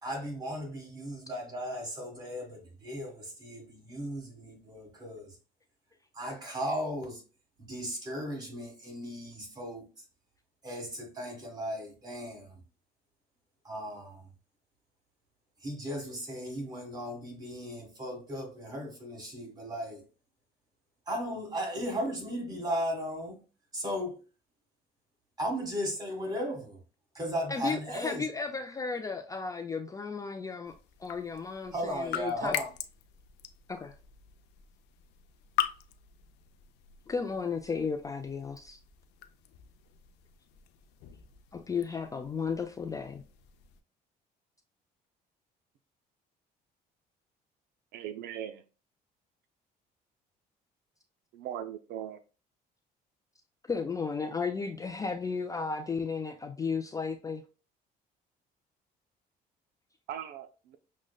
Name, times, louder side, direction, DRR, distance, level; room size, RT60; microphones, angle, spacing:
voice 1, 0.0-5.4 6.1-7.2 7.6-10.0 10.6-12.6 13.6-14.3 15.6-20.0 21.1-23.4 23.7-24.2 25.4-26.8 27.1-28.2 31.7-32.7, equal, 25° right, 1.7 m, -36 dB
voice 2, 27.5-30.7 31.0-32.5 33.7-33.9 37.1-38.8 41.5-43.2 53.7-57.4, left 5 dB, 20° left, 0.3 m, -34 dB
sound 1, 30.6-43.8, left 12 dB, 85° left, 0.4 m, -42 dB
voice 3, 47.9-48.6 51.3-52.2 60.1-60.8, right 10 dB, 70° right, 0.4 m, -39 dB
6.2 x 2.1 x 2.2 m
cardioid pair, 110°, 17 cm